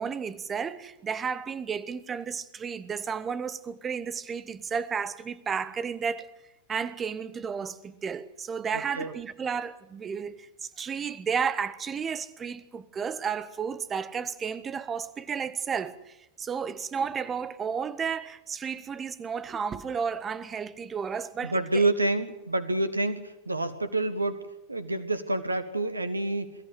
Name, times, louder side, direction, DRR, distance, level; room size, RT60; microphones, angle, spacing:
voice 1, 0.0-6.3 6.7-21.9, right 6 dB, 20° right, 1.2 m, -32 dB
voice 2, 8.7-9.1 21.4-24.4 24.7-26.5, right 2 dB, 80° right, 1.7 m, -28 dB
23.0 x 14.5 x 9.2 m
figure-of-eight pair, 90°, 0 cm